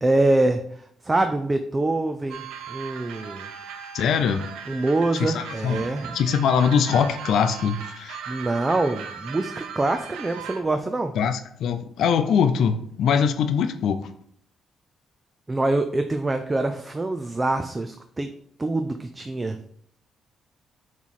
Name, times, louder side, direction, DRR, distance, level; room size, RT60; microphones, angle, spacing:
voice 1, 0.0-3.5 4.7-6.2 8.3-11.1 15.5-18.3 18.6-19.6, right 2 dB, 20° right, 7 dB, 0.4 m, -25 dB
sound 1, 2.3-10.6, right 7 dB, 90° right, 0.7 m, -38 dB
voice 2, 3.9-4.5 5.2-8.2 11.2-14.1, left 7 dB, 75° left, 10 dB, 0.5 m, -22 dB
7.1 x 3.1 x 4.2 m, 0.65 s
cardioid pair, 90°, 0 cm